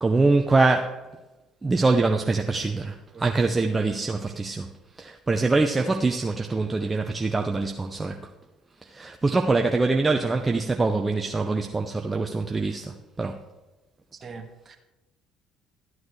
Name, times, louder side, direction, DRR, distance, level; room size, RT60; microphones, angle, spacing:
voice 1, 0.0-1.1 1.6-4.7 5.0-8.2 8.8-13.4, right 3 dB, 20° right, 0.7 m, -24 dB
voice 2, 14.2-14.8, right 5 dB, 40° right, 1.5 m, -41 dB
12.5 x 9.4 x 3.3 m
hypercardioid pair, 60°, 0 cm